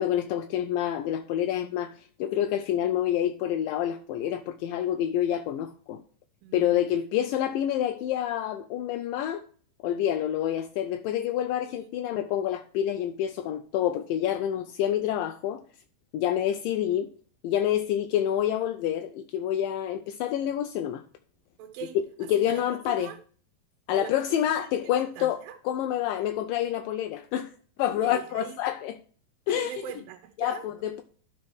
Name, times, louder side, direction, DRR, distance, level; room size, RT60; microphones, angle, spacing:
voice 1, 0.0-1.9 2.2-6.0 6.5-9.4 9.8-15.6 16.1-17.1 17.4-21.0 22.0-22.1 22.3-23.1 23.9-25.4 25.7-27.5 27.8-29.0 29.5-29.7 30.4-31.0, left 11 dB, 80° left, 2.1 m, -27 dB
voice 2, 6.4-6.8 11.7-11.9 21.6-23.2 23.9-25.6 27.9-28.6 29.5-31.0, right 9 dB, 80° right, 2.3 m, -42 dB
12.0 x 4.2 x 4.7 m
omnidirectional pair, 4.1 m